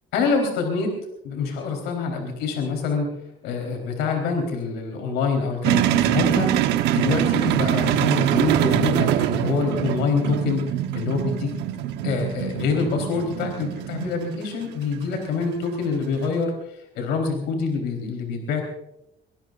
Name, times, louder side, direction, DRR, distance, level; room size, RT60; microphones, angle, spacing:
voice 1, 0.1-0.9 1.2-3.1 3.4-6.6 6.9-10.7 10.9-11.5 12.0-18.6, left 4 dB, 90° left, 2 dB, 4.0 m, -26 dB
sound 1, 5.6-16.4, right 11 dB, 90° right, 1.1 m, -24 dB
24.5 x 19.0 x 2.6 m, 0.82 s
cardioid pair, 110°, 17 cm